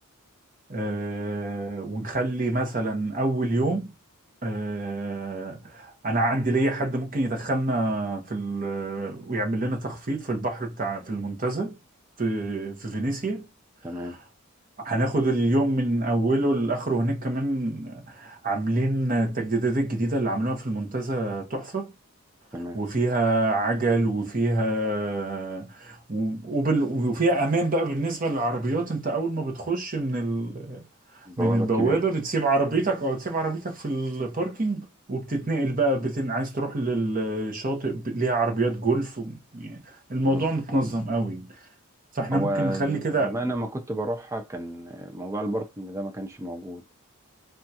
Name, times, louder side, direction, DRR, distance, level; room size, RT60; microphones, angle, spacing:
voice 1, 0.7-3.9 4.4-11.8 12.2-13.5 14.1-14.2 14.8-21.9 22.7-30.8 31.4-41.6 42.1-43.3, right 2 dB, 40° right, 0.8 m, -26 dB
voice 2, 13.8-14.2 22.5-22.8 31.3-32.0 40.2-40.5 42.3-46.8, right 1 dB, 10° right, 0.4 m, -31 dB
3.5 x 2.3 x 2.7 m
head